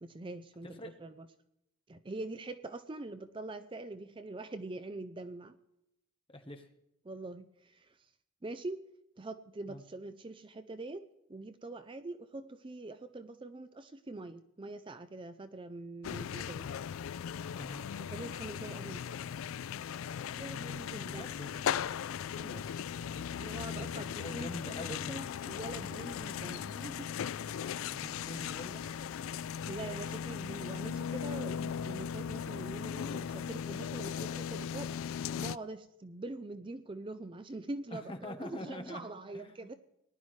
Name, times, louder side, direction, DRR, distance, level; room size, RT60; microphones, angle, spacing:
voice 1, 0.0-1.3 1.9-5.6 7.0-8.1 8.4-8.8 9.2-11.0 11.3-16.7 18.0-19.3 20.4-21.5 22.4-22.6 23.4-27.1 29.7-34.9 35.3-39.7, right 2 dB, 25° right, 10 dB, 0.5 m, -44 dB
voice 2, 0.6-0.9 6.3-6.7 9.7-9.8 17.5-17.8 21.0-21.6 23.2-23.3 23.7-25.1 27.9-28.8 37.9-39.7, left 1 dB, 25° left, 6 dB, 1.1 m, -45 dB
sound 1, 16.0-35.6, left 8 dB, 75° left, 0.3 m, -38 dB
sound 2, 28.0-32.1 32.6-32.9, right 3 dB, 75° right, 2.2 m, -65 dB
19.5 x 11.0 x 3.2 m, 0.85 s
head